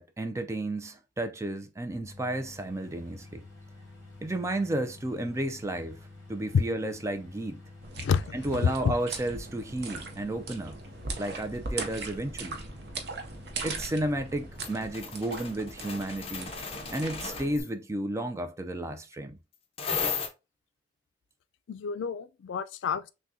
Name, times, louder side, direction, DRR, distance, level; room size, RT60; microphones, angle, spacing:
voice 1, 0.0-3.4 4.2-6.0 6.3-7.6 8.3-10.8 11.2-12.6 13.6-16.5 16.9-19.4, right 1 dB, 15° right, 0.4 m, -32 dB
sound 1, 2.0-14.9, left 2 dB, 15° left, 2.3 m, -50 dB
sound 2, 7.8-17.6, right 3 dB, 65° right, 0.7 m, -40 dB
voice 2, 8.6-8.9 21.7-23.1, left 6 dB, 85° left, 0.4 m, -29 dB
sound 3, 14.6-17.7 19.8-20.3, left 6 dB, 35° left, 0.7 m, -35 dB
5.9 x 2.2 x 2.6 m
head